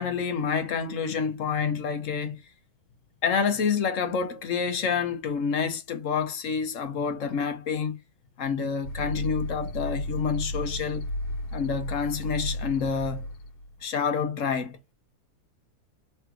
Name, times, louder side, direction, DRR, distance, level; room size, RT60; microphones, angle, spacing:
voice 1, 0.0-2.4 3.2-8.0 8.4-11.0 11.5-13.3 13.8-14.8, left 6 dB, 60° left, 1.1 m, -28 dB
sound 1, 8.8-13.7, left 1 dB, 90° left, 1.4 m, -33 dB
3.3 x 3.2 x 4.6 m
omnidirectional pair, 1.6 m